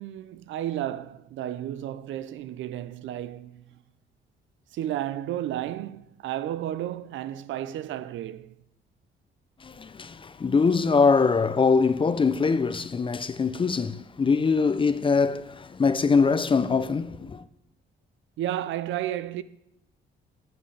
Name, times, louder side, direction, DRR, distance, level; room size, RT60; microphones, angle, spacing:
voice 1, 0.0-3.8 4.7-8.5 18.4-19.4, right 12 dB, 75° right, 0.5 m, -32 dB
voice 2, 9.6-17.4, left 5 dB, 25° left, 0.5 m, -23 dB
14.5 x 7.8 x 3.3 m
cardioid pair, 90°, 20 cm